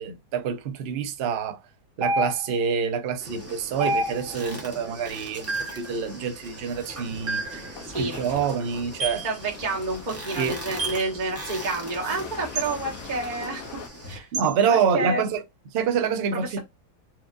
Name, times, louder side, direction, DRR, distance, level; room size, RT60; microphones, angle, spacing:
voice 1, 0.0-1.6 2.0-7.6 8.0-9.2 10.4-10.5 14.3-15.4 15.7-16.6, right 6 dB, 75° right, 0.5 m, -26 dB
sound 1, 2.0-2.7 3.8-4.5 5.5-5.9 7.3-7.7 9.0-9.3 10.8-11.1 12.6-12.7 14.3-14.5, right 2 dB, 55° right, 1.3 m, -28 dB
sound 2, 3.2-14.2, equal, 15° right, 0.7 m, -41 dB
voice 2, 7.5-8.1 9.2-13.8 14.1-14.3 14.7-15.2 16.3-16.6, right 3 dB, 30° right, 1.1 m, -29 dB
sound 3, 7.7-13.9, left 6 dB, 60° left, 1.0 m, -42 dB
4.3 x 2.5 x 2.5 m
omnidirectional pair, 1.8 m